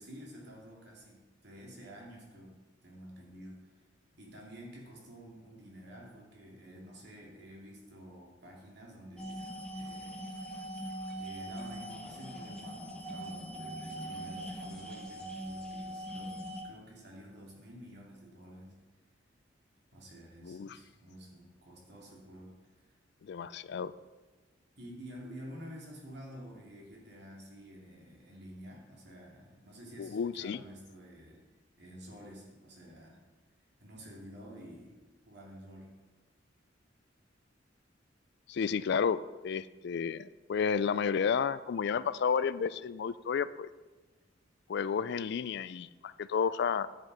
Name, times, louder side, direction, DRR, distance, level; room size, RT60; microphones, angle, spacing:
voice 1, 0.0-2.6 2.8-3.9 4.2-10.3 11.2-18.8 19.9-22.9 24.8-31.4 31.8-33.2 33.8-35.0 35.3-35.9, equal, 60° right, -2 dB, 2.7 m, -50 dB
sound 1, 9.2-16.6, right 1 dB, 5° left, 1.4 m, -41 dB
voice 2, 20.4-20.8 23.2-23.9 30.0-30.6 38.5-43.7 44.7-46.9, left 6 dB, 65° left, 16 dB, 0.3 m, -31 dB
10.5 x 7.9 x 4.8 m, 1.2 s
head